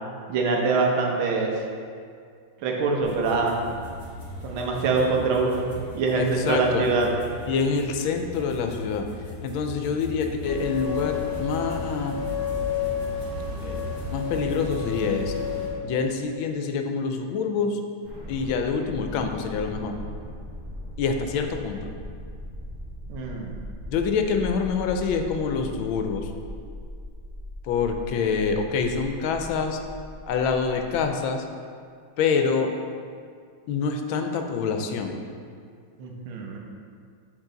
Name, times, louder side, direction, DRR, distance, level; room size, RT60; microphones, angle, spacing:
voice 1, 0.3-1.6 2.6-3.6 4.4-7.1 23.1-23.5 36.0-36.6, right 4 dB, 85° right, 0 dB, 1.6 m, -24 dB
sound 1, 3.0-15.0, left 1 dB, 30° left, 1.2 m, -40 dB
voice 2, 6.2-6.8 7.5-9.1 9.4-12.2 13.6-13.8 14.1-15.3 15.8-17.8 18.3-20.0 21.0-21.9 23.9-26.3 27.6-29.8 30.3-31.4 32.2-32.7 33.7-35.2, left 5 dB, 80° left, 5 dB, 1.3 m, -26 dB
sound 2, 10.4-15.7, left 6 dB, 50° right, 2.0 m, -30 dB
sound 3, 18.0-31.1, left 1 dB, 25° right, 0.5 m, -39 dB
7.3 x 4.0 x 3.8 m, 2.2 s
omnidirectional pair, 2.2 m